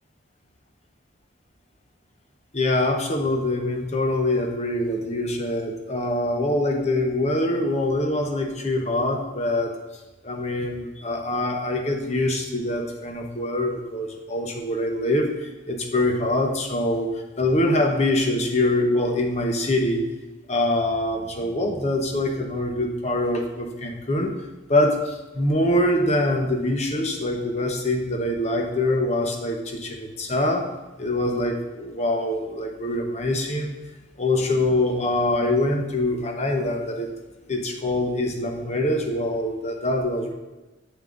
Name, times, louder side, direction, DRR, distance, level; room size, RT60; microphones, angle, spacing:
voice 1, 2.5-9.7 10.2-17.1 17.4-20.0 20.5-24.3 24.7-30.7 31.0-33.8 34.2-37.1 37.5-40.3, left 1 dB, 35° left, 3 dB, 0.9 m, -24 dB
7.4 x 7.1 x 2.5 m, 1.1 s
head